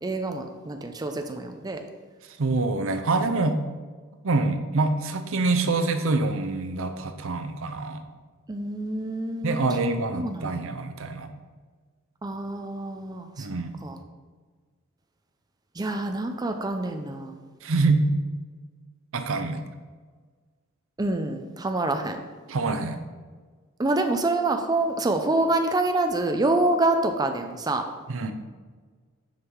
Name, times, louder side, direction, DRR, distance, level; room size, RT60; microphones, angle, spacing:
voice 1, 0.0-1.8 8.5-10.6 12.2-13.5 13.8-14.0 15.8-17.4 21.0-22.2 23.8-27.8, right 2 dB, 20° right, 5 dB, 0.5 m, -26 dB
voice 2, 2.4-3.6 4.2-8.0 9.4-11.3 13.4-13.7 17.6-18.1 19.1-19.6 22.5-23.0 28.1-28.3, right 3 dB, 70° right, 8 dB, 0.6 m, -25 dB
6.5 x 5.5 x 4.6 m, 1.5 s
head